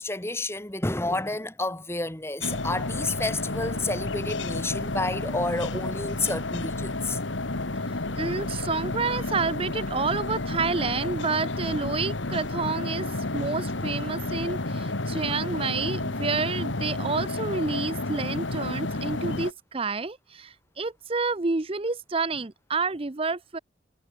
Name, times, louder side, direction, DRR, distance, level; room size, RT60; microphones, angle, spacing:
voice 1, 0.0-7.2, left 2 dB, 15° left, 1.4 m, -30 dB
sound 1, 2.4-19.5, left 2 dB, 85° left, 2.1 m, -31 dB
voice 2, 7.9-23.6, right 4 dB, 30° right, 0.7 m, -29 dB
head